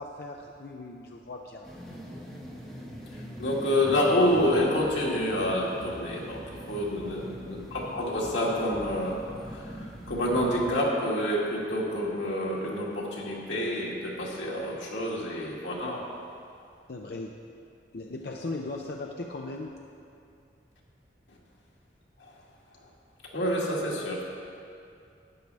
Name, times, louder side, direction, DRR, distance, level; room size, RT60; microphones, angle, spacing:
voice 1, 0.0-1.8 7.2-7.7 16.9-17.3 17.9-19.8, left 2 dB, 55° left, 1 dB, 0.5 m, -38 dB
sound 1, 1.6-10.7, equal, ahead, 1.4 m, -42 dB
voice 2, 3.1-6.4 6.7-16.0 22.2-22.3 23.2-24.2, left 1 dB, 90° left, -4 dB, 1.9 m, -28 dB
12.5 x 9.2 x 3.4 m, 2.5 s
head